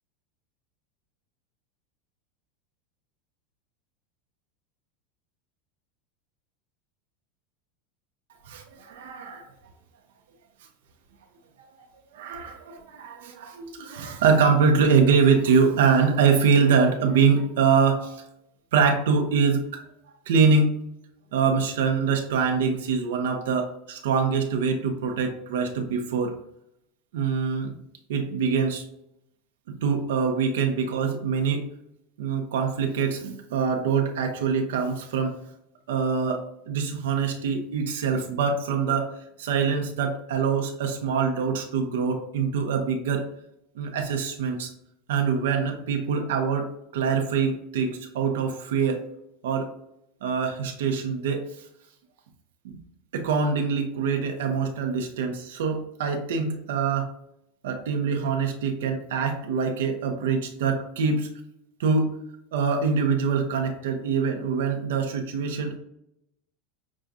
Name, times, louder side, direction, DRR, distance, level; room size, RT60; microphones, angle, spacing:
voice 1, 8.5-9.4 12.1-18.2 18.7-19.7 20.3-20.8 21.3-26.3 27.1-27.7 28.1-28.8 29.8-31.7 32.2-35.4 35.9-39.1 39.4-43.3 43.8-44.7 45.1-49.0 49.4-49.7 50.2-51.4 52.6-52.8 53.1-57.1 57.6-61.3 61.8-62.1 62.5-65.8, right 5 dB, 85° right, 5 dB, 0.8 m, -24 dB
6.2 x 2.3 x 2.6 m, 0.76 s
supercardioid pair, 170°, 0 cm